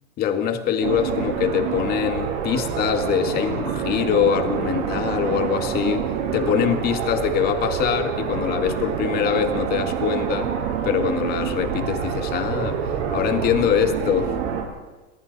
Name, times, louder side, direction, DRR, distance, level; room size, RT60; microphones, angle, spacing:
voice 1, 0.2-10.5 10.8-12.8 13.1-14.3, left 8 dB, 20° left, 7 dB, 1.9 m, -23 dB
sound 1, 0.8-14.6, right 7 dB, 60° right, 7.5 m, -27 dB
28.5 x 26.5 x 4.2 m, 1.2 s
supercardioid pair, 170°, 41 cm